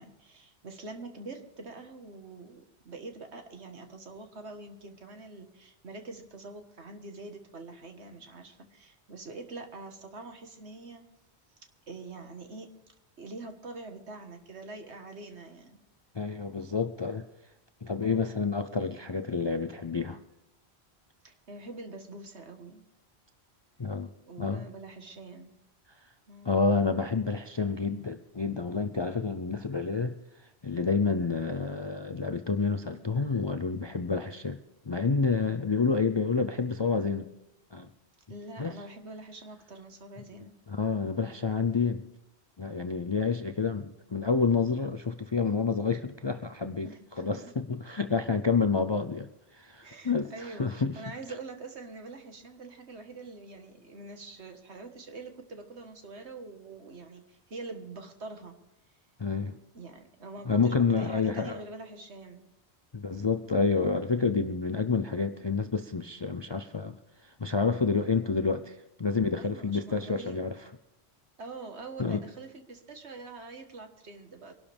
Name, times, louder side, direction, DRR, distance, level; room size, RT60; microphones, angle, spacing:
voice 1, 0.0-11.0 11.9-12.7 13.2-15.8 18.0-18.4 21.2-22.8 24.3-25.5 26.3-26.6 38.3-40.5 46.8-47.3 49.8-58.6 59.7-62.5 68.0-68.4 69.3-70.5 71.4-74.5, right 3 dB, 85° right, 5 dB, 1.9 m, -45 dB
voice 2, 16.1-17.3 17.8-20.2 23.8-24.1 24.4-24.7 26.4-30.1 30.6-34.6 34.9-37.3 37.7-37.9 38.6-38.7 40.7-42.0 42.6-46.9 47.2-50.9 59.2-59.6 60.5-61.6 62.9-66.9 67.2-70.6 72.0-72.2, left 4 dB, 35° left, 8 dB, 0.5 m, -29 dB
24.0 x 12.0 x 3.5 m, 0.88 s
omnidirectional pair, 1.1 m